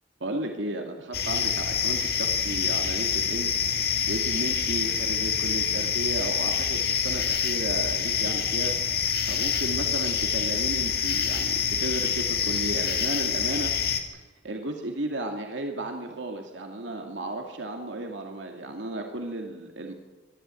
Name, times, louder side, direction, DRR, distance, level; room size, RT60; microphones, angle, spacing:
voice 1, 0.2-3.5 3.8-8.7 9.2-13.7 14.4-19.9, right 2 dB, 80° right, 3 dB, 2.3 m, -34 dB
sound 1, 1.1-14.0, left 7 dB, 55° left, 2.3 m, -26 dB
24.5 x 12.0 x 9.1 m, 1.2 s
head